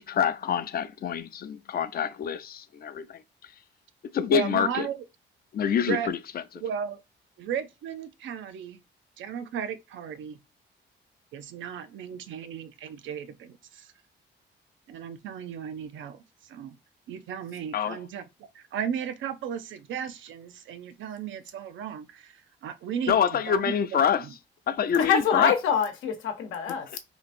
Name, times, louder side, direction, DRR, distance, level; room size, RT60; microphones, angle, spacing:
voice 1, 0.0-3.2 4.1-4.9 5.5-6.2 17.7-18.0 23.1-24.2 24.7-25.5, left 8 dB, 50° left, 0.5 m, -26 dB
voice 2, 4.3-5.0 5.8-6.1 6.6-7.0 7.4-8.8 9.2-10.4 11.3-13.9 14.9-16.8 17.1-18.2 18.5-24.3, right 8 dB, 75° right, 0.6 m, -35 dB
voice 3, 24.9-27.0, left 7 dB, 85° left, 0.9 m, -25 dB
2.9 x 2.5 x 4.1 m
cardioid pair, 90°, 20 cm